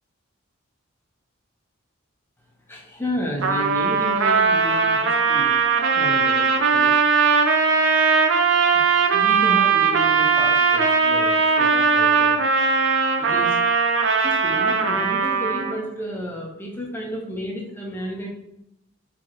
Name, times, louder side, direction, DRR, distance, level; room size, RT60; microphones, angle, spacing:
voice 1, 2.7-7.0 9.1-12.4 13.2-13.9 14.2-18.3, left 1 dB, 10° left, -1 dB, 1.0 m, -32 dB
Trumpet, 3.4-15.9, right 5 dB, 65° right, 0.6 m, -19 dB
4.7 x 3.6 x 3.0 m, 0.79 s
head